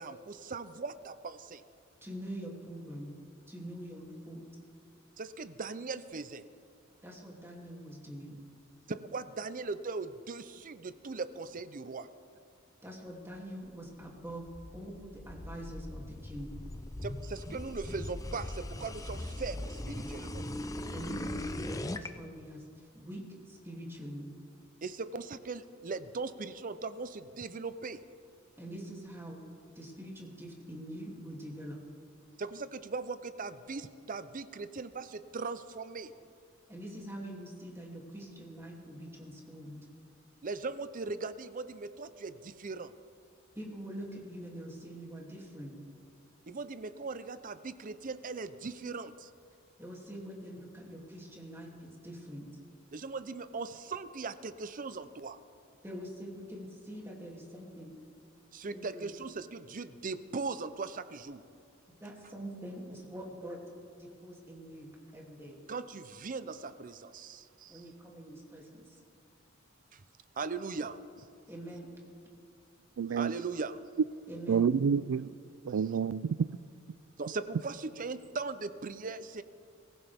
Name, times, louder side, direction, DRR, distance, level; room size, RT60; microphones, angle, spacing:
voice 1, 0.0-1.6 5.2-6.4 8.9-12.1 17.0-20.4 24.8-28.0 32.4-36.1 40.4-42.9 46.5-49.3 52.9-55.4 58.5-61.4 65.7-67.8 69.9-70.0 70.4-71.3 73.1-73.8 77.2-79.4, right 4 dB, 40° right, 13 dB, 0.6 m, -39 dB
voice 2, 2.0-3.1 3.5-4.4 7.0-8.4 12.8-16.5 20.9-24.3 28.6-29.4 29.7-31.8 36.7-39.9 43.5-45.8 49.8-52.5 55.8-58.0 58.7-59.1 62.0-63.6 64.0-65.6 67.7-69.0 71.5-71.9 74.3-74.7, equal, 10° right, -2 dB, 2.8 m, -44 dB
sound 1, 14.0-22.1, left 1 dB, 15° left, 0.6 m, -40 dB
voice 3, 73.0-73.3 74.5-75.3 75.6-76.5, right 7 dB, 90° right, 19 dB, 0.4 m, -28 dB
23.5 x 15.5 x 3.5 m, 2.4 s
head